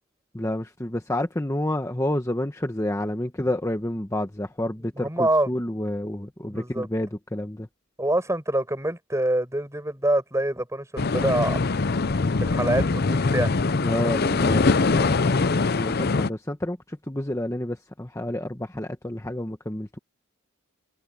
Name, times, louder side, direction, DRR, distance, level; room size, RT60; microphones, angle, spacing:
voice 1, 0.3-7.7 13.8-20.0, left 1 dB, 15° left, 1.1 m, -29 dB
voice 2, 5.0-5.5 6.4-6.9 8.0-11.6 12.4-13.5, right 1 dB, 15° right, 6.5 m, -25 dB
sound 1, 11.0-16.3, left 3 dB, 50° left, 0.6 m, -22 dB
head